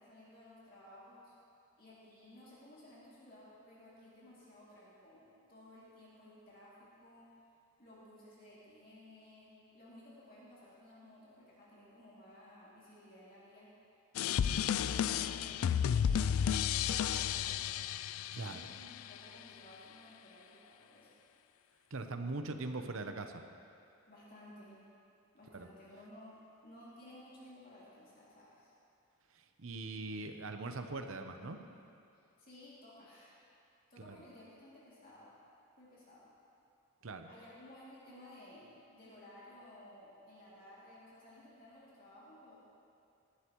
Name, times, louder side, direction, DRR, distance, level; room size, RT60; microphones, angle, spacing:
voice 1, 0.0-1.3 1.8-7.3 7.8-13.7 14.4-17.7 18.3-21.1 24.1-24.8 25.3-28.7 32.4-33.3 33.9-35.3 35.8-36.3 37.3-42.6, left 1 dB, 45° left, -8 dB, 2.6 m, -56 dB
sound 1, 14.1-19.1, left 8 dB, 70° left, 0.3 m, -32 dB
voice 2, 18.3-18.7 21.9-23.4 25.5-25.7 29.3-31.6 34.0-34.2 37.0-37.3, right 3 dB, 65° right, 6 dB, 0.8 m, -41 dB
19.0 x 11.5 x 3.1 m, 2.5 s
head